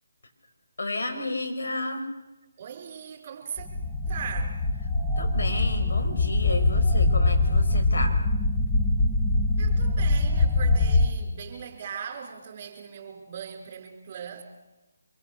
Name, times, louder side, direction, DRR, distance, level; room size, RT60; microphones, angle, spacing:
voice 1, 0.8-2.1 5.2-8.2, left 2 dB, 65° left, 3 dB, 5.3 m, -32 dB
voice 2, 2.6-3.7 4.0-4.8 9.6-14.4, right 7 dB, 35° right, 3 dB, 5.0 m, -39 dB
sound 1, 3.6-11.1, left 2 dB, 10° left, 1.5 m, -23 dB
25.5 x 23.5 x 6.9 m, 1.0 s
figure-of-eight pair, 150°, 0 cm